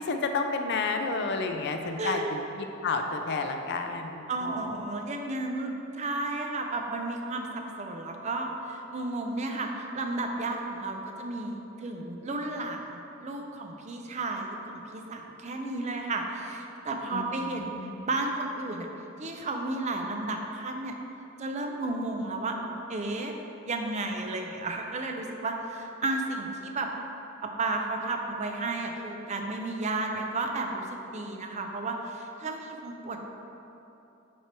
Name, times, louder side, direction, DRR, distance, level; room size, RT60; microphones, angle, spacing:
voice 1, 0.0-2.4 2.8-4.6 17.1-18.1, left 3 dB, 55° left, 5 dB, 0.4 m, -31 dB
voice 2, 2.0-2.3 4.3-18.9 19.2-20.9 21.4-22.6 22.9-23.3 23.6-26.9 27.4-33.3, right 2 dB, 35° right, 3 dB, 0.5 m, -33 dB
7.6 x 3.3 x 4.4 m, 2.9 s
head